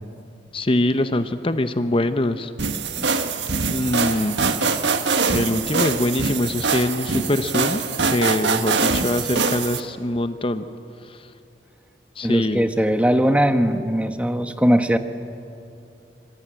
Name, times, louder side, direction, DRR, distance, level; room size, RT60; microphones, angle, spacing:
voice 1, 0.5-2.5 3.7-4.4 4.8-4.9 5.3-10.6 11.1-11.2 12.2-12.6, left 1 dB, 30° left, 10 dB, 0.8 m, -23 dB
sound 1, 2.6-9.8, right 4 dB, 80° right, 1.6 m, -23 dB
voice 2, 12.2-15.0, equal, 5° right, 8 dB, 1.1 m, -20 dB
25.5 x 24.5 x 9.0 m, 2.6 s
head